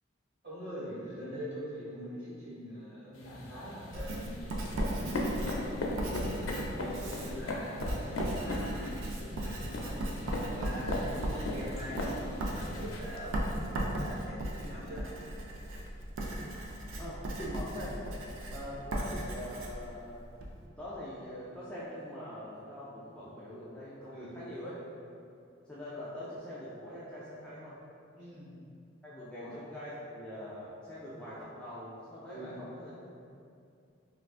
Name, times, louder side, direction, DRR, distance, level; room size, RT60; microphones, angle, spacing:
voice 1, 0.4-6.4 6.8-12.0 12.4-15.1 24.1-24.4 28.1-28.5 29.3-29.5 32.3-32.5, equal, 55° right, -12 dB, 1.5 m, -44 dB
sound 1, 3.1-13.0, left 1 dB, 75° left, 0.4 m, -38 dB
Writing, 3.9-20.6, right 1 dB, 80° right, 0.4 m, -37 dB
voice 2, 17.0-18.0 18.5-20.2 20.8-24.8 25.7-27.8 29.0-33.2, equal, 5° left, -10 dB, 0.3 m, -43 dB
3.4 x 2.4 x 2.4 m, 2.5 s
head